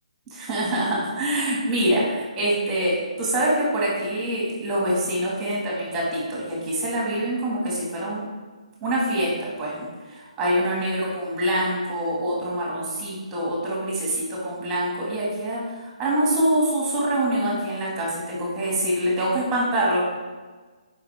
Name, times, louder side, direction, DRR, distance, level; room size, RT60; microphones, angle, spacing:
voice 1, 0.3-8.3 8.8-20.1, right 1 dB, 15° right, -5 dB, 2.1 m, -25 dB
9.2 x 5.3 x 3.6 m, 1.4 s
hypercardioid pair, 150°, 4 cm